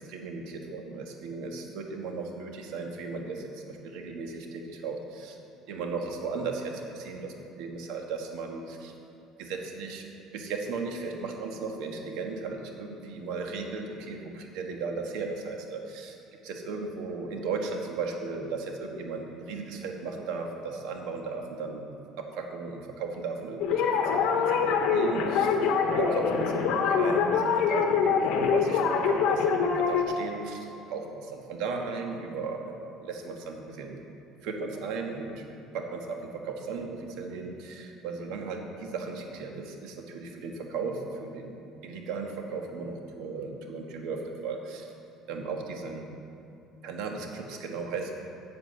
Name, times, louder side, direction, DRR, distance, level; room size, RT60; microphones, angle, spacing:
voice 1, 0.0-5.4 5.7-8.9 9.4-10.0 10.3-16.1 16.4-32.7 33.0-34.0 34.4-35.4 35.7-41.5 41.8-44.9 45.3-46.1 46.8-48.1, right 4 dB, 80° right, 2 dB, 1.5 m, -36 dB
sound 1, 23.6-30.0, left 6 dB, 70° left, 1.1 m, -24 dB
8.3 x 7.7 x 7.8 m, 2.7 s
cardioid pair, 120°, 0 cm